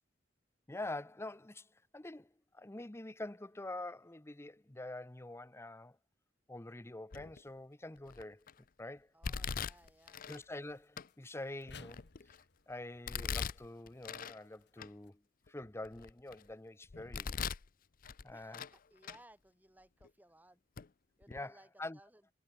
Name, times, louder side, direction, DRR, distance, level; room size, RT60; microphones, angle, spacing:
voice 1, 0.7-6.0 6.5-8.5 8.8-9.1 10.3-12.3 12.7-15.2 15.5-17.5 18.2-18.6 21.3-22.0, left 2 dB, 15° left, 0.7 m, -46 dB
Domestic sounds home sounds, 7.1-7.5 8.1-8.5 9.2-10.4 11.0-11.1 11.6-12.4 13.1-14.4 14.8-14.9 15.5-16.4 16.9-17.7 18.0-18.8 19.0-19.2 20.0-20.1 20.8-20.9 21.2-21.4, left 6 dB, 50° left, 0.6 m, -41 dB
voice 2, 9.1-10.2 18.3-20.6 21.2-21.7 21.9-22.2, right 1 dB, 10° right, 2.1 m, -62 dB
sound 1, 9.7-15.1, left 5 dB, 65° left, 3.0 m, -62 dB
head